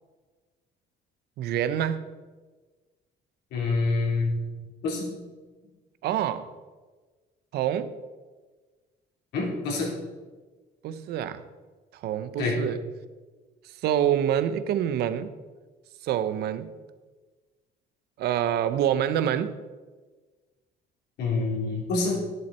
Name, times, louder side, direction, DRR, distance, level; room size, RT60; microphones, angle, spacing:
voice 1, 1.4-2.1 6.0-6.5 7.5-7.9 10.8-11.5 11.9-12.8 13.8-15.3 16.0-16.7 18.2-19.5, right 10 dB, 75° right, 13 dB, 0.8 m, -26 dB
voice 2, 3.5-4.4 4.8-5.1 9.3-9.9 12.4-12.6 21.2-22.2, left 3 dB, 80° left, -3 dB, 3.9 m, -26 dB
11.0 x 11.0 x 4.3 m, 1.3 s
cardioid pair, 110°, 17 cm